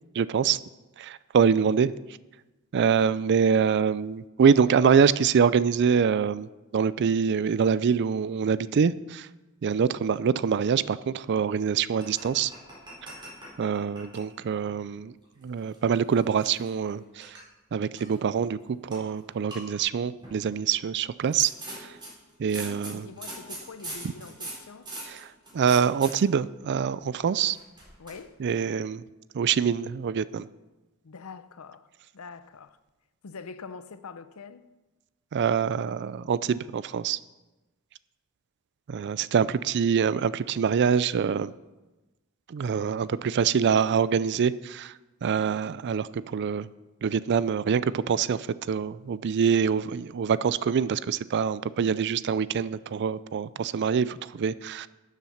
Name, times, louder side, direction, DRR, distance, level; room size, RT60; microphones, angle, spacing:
voice 1, 0.1-0.6 1.0-1.9 2.7-6.5 6.7-9.3 9.6-12.5 13.6-15.1 15.4-17.4 17.7-22.0 22.4-23.1 25.1-25.3 25.5-27.6 28.4-29.0 29.3-30.5 35.3-37.2 38.9-41.5 42.5-44.9 45.2-46.7 47.0-54.9, right 7 dB, 55° right, 0.4 m, -25 dB
sound 1, 12.0-14.3 14.6-14.8 15.4-16.9 17.2-17.4 18.0-18.4 18.9-19.0 19.3-19.6 20.2-20.6 21.2-26.1 27.4-28.2, right 1 dB, 20° right, 4.1 m, -42 dB
voice 2, 22.9-24.9 28.0-28.4 31.0-32.8 33.2-34.7, left 5 dB, 75° left, 0.6 m, -44 dB
12.0 x 7.4 x 5.6 m
head